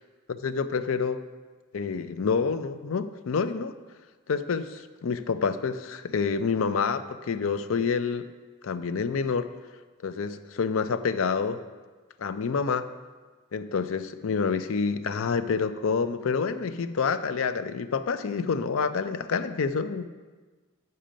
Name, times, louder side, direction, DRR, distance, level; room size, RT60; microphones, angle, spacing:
voice 1, 0.3-1.2 1.7-3.7 4.3-8.2 8.6-9.5 10.0-11.6 12.2-12.9 13.5-20.1, left 5 dB, 70° left, 11 dB, 0.4 m, -28 dB
8.8 x 5.5 x 5.1 m, 1.4 s
head